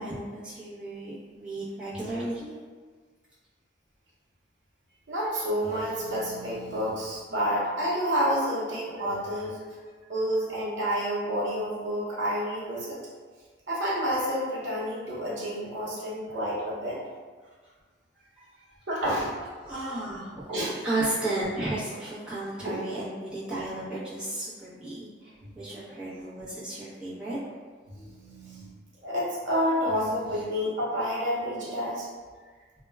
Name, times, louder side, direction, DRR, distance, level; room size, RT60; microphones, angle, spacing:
voice 1, 0.0-2.5 9.3-9.4 18.4-18.6 19.4-20.4 20.8-27.4, right 2 dB, 5° right, -11 dB, 0.7 m, -34 dB
voice 2, 5.1-9.6 10.1-13.0 13.7-17.0 18.9-19.3 20.5-20.8 22.6-22.8 25.4-25.5 27.9-28.8 29.0-32.1, equal, 80° right, -6 dB, 0.7 m, -29 dB
2.2 x 2.2 x 3.2 m, 1.5 s
head